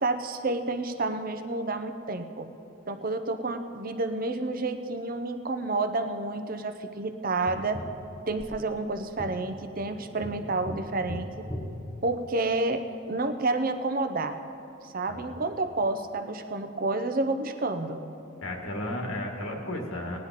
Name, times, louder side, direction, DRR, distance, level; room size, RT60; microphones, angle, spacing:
voice 1, 0.0-2.5 2.9-7.8 8.3-11.3 12.0-14.4 14.8-18.0, right 2 dB, 45° right, 9 dB, 0.6 m, -29 dB
Tap, 7.5-12.8 15.4-15.5, equal, 15° left, 0.8 m, -41 dB
voice 2, 18.4-20.2, left 1 dB, 75° left, 1 dB, 1.7 m, -34 dB
19.0 x 9.9 x 4.1 m, 2.7 s
head